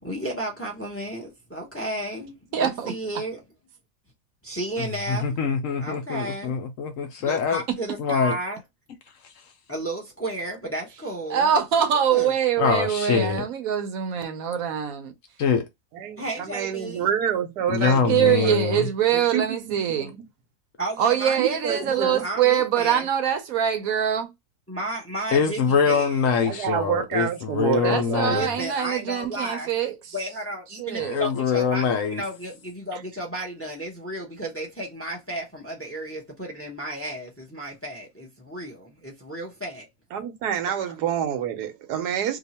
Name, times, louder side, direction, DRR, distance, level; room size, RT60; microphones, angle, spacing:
voice 1, 0.0-3.4 4.4-5.4 5.8-6.6 7.3-8.6 9.7-11.5 11.8-12.3 16.2-17.1 20.8-23.1 24.7-26.3 28.3-29.7 30.1-31.8 32.1-39.9, right 1 dB, 10° left, 0.7 m, -33 dB
voice 2, 2.5-2.9 7.7-7.8 11.3-15.1 18.1-20.1 21.0-24.3 27.8-30.0 30.8-31.2, right 9 dB, 70° right, 1.0 m, -23 dB
voice 3, 4.8-7.6 8.0-8.4 12.6-13.5 15.4-15.7 17.7-18.9 25.3-28.5 31.0-32.2, left 6 dB, 65° left, 0.9 m, -24 dB
voice 4, 15.9-18.9 19.1-20.2 21.4-22.2 26.4-28.5 40.1-42.4, right 9 dB, 90° right, 1.3 m, -28 dB
2.8 x 2.4 x 4.1 m
omnidirectional pair, 1.7 m